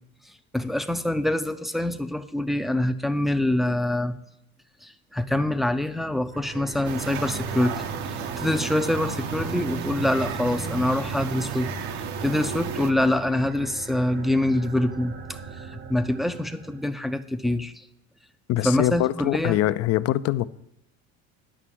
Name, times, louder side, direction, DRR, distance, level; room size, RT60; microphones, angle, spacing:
voice 1, 0.5-4.2 4.8-11.7 12.2-15.4 15.9-17.7 18.6-19.6, left 1 dB, ahead, 8 dB, 0.5 m, -25 dB
sound 1, 6.3-16.9, right 5 dB, 35° right, 0.8 m, -38 dB
sound 2, 6.8-12.9, right 5 dB, 75° right, 0.9 m, -33 dB
voice 2, 18.5-20.5, left 14 dB, 50° left, 15 dB, 0.5 m, -23 dB
9.9 x 5.8 x 7.5 m, 0.82 s
cardioid pair, 115°, 31 cm